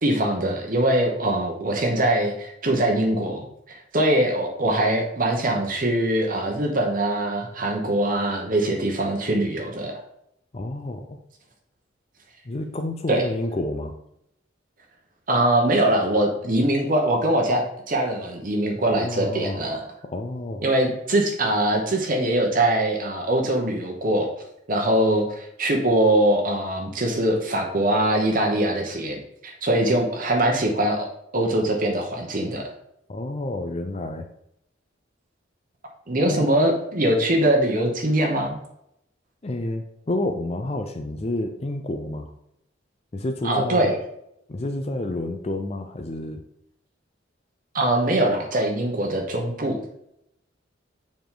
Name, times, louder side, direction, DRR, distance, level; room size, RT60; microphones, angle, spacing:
voice 1, 0.0-10.0 13.1-13.2 15.3-19.8 20.6-24.3 24.7-31.1 31.3-32.7 36.1-38.6 43.4-44.0 47.7-49.8, right 1 dB, 45° right, 1 dB, 1.0 m, -22 dB
voice 2, 10.5-11.2 12.4-14.0 18.9-19.6 20.0-20.7 33.1-34.3 36.2-36.5 39.4-42.3 43.1-43.9 44.5-46.4, left 1 dB, 35° left, 5 dB, 0.5 m, -29 dB
7.2 x 5.1 x 3.8 m, 0.77 s
head